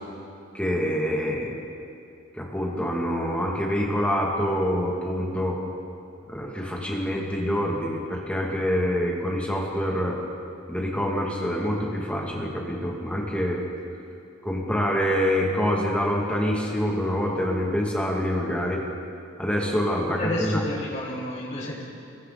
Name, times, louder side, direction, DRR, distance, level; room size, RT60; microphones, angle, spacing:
voice 1, 0.5-1.6 2.3-5.6 6.3-10.2 10.7-13.6 14.4-18.8 19.4-20.6, equal, 5° left, -2 dB, 2.6 m, -26 dB
voice 2, 20.1-21.8, left 1 dB, 35° left, -6 dB, 7.1 m, -30 dB
29.0 x 22.0 x 4.2 m, 2.6 s
head